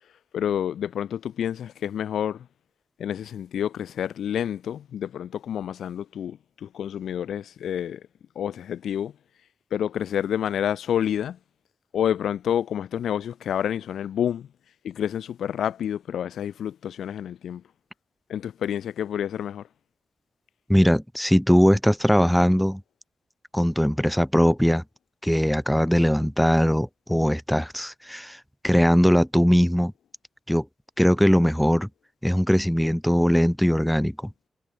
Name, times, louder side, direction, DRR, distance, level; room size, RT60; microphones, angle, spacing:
voice 1, 0.3-2.5 3.0-8.0 8.3-9.1 9.7-11.4 11.9-14.5 14.8-17.6 18.3-19.7, left 9 dB, 85° left, 1.0 m, -28 dB
voice 2, 20.7-22.8 23.5-24.8 25.2-29.9 30.5-30.7 31.0-31.9 32.2-34.3, equal, ahead, 0.9 m, -20 dB
supercardioid pair, 50°, 0 cm